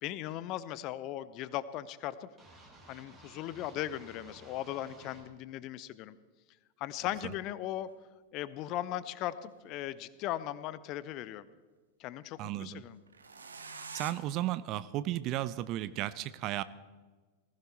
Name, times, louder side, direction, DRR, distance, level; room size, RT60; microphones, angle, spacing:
voice 1, 0.0-2.3 2.9-6.2 6.8-7.9 8.3-11.5 12.0-13.0, left 13 dB, 40° left, 17 dB, 0.7 m, -38 dB
sound 1, 2.4-5.2, right 2 dB, 20° right, 6.3 m, -55 dB
sound 2, 7.9-8.0 9.2-10.3 13.1-14.1, right 4 dB, 75° right, 1.3 m, -46 dB
voice 2, 12.4-12.8 13.9-16.6, right 14 dB, 40° right, 16 dB, 0.6 m, -34 dB
19.5 x 15.5 x 4.1 m, 1.4 s
figure-of-eight pair, 90°, 0 cm